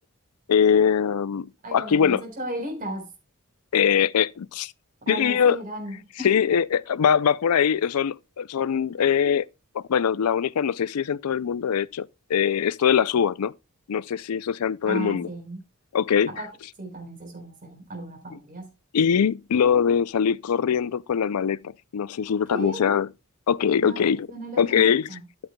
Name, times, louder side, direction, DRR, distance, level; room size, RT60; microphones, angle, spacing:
voice 1, 0.5-2.2 3.7-4.7 5.1-5.6 6.2-9.5 9.7-13.5 13.9-15.3 15.9-16.3 18.9-23.1 23.5-24.3 24.6-25.0, left 7 dB, 80° left, 0.4 m, -22 dB
voice 2, 1.6-3.1 5.0-6.4 14.9-15.6 16.3-16.5 16.8-18.7 22.5-22.8 23.8-25.2, right 1 dB, 40° right, 4.0 m, -35 dB
12.0 x 8.8 x 2.2 m
head